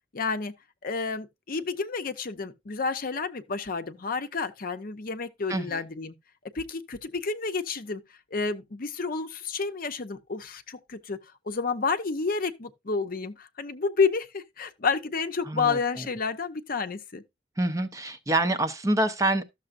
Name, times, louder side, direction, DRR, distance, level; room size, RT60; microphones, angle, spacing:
voice 1, 0.1-0.5 0.8-6.1 6.5-8.0 8.3-11.2 11.5-17.2, left 4 dB, 50° left, 0.7 m, -30 dB
voice 2, 5.5-5.8 15.4-15.8 17.6-19.4, right 2 dB, 15° right, 0.6 m, -26 dB
13.0 x 6.7 x 2.5 m
head